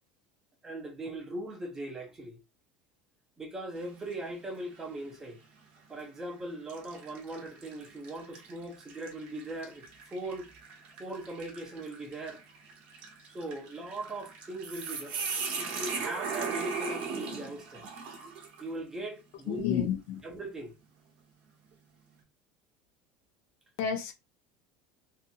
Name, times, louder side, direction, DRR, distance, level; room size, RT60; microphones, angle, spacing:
voice 1, 0.6-2.4 3.4-5.4 5.9-10.5 11.0-12.4 13.3-15.3 15.5-17.9 18.6-19.6 20.2-20.8, right 1 dB, 15° right, 0.6 m, -40 dB
sound 1, 3.8-4.2 4.8-4.9 5.8-6.1 6.7-18.7, right 5 dB, 50° right, 1.0 m, -39 dB
voice 2, 19.5-20.2 23.8-24.1, left 8 dB, 60° left, 0.7 m, -30 dB
2.6 x 2.6 x 2.6 m
cardioid pair, 155°, 3 cm